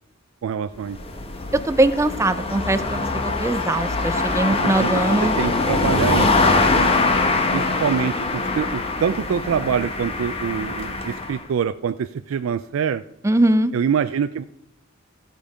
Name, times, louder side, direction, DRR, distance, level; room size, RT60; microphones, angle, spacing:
voice 1, 0.4-1.0 4.5-4.9 5.2-6.9 7.5-13.0 13.7-14.4, right 7 dB, 85° right, 11 dB, 0.4 m, -25 dB
sound 1, 0.8-11.4, left 3 dB, 30° left, 0.9 m, -23 dB
voice 2, 1.7-3.1 3.4-5.4 13.2-13.7, right 1 dB, 15° right, 12 dB, 0.4 m, -21 dB
14.5 x 5.2 x 4.9 m, 0.78 s
head